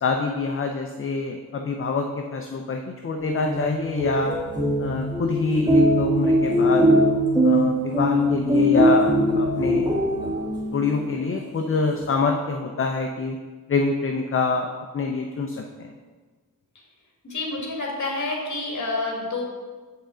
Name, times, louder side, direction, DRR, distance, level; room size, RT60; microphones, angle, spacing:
voice 1, 0.0-4.3 4.8-6.8 7.4-9.9 10.7-13.4 13.7-14.7 14.9-15.9, left 4 dB, 35° left, 3 dB, 0.5 m, -26 dB
sound 1, 3.3-10.9, equal, 10° right, 1.3 m, -21 dB
voice 2, 17.2-19.4, left 2 dB, 55° left, -2 dB, 1.9 m, -28 dB
7.6 x 5.6 x 3.7 m, 1.4 s
wide cardioid pair, 145°, 35 cm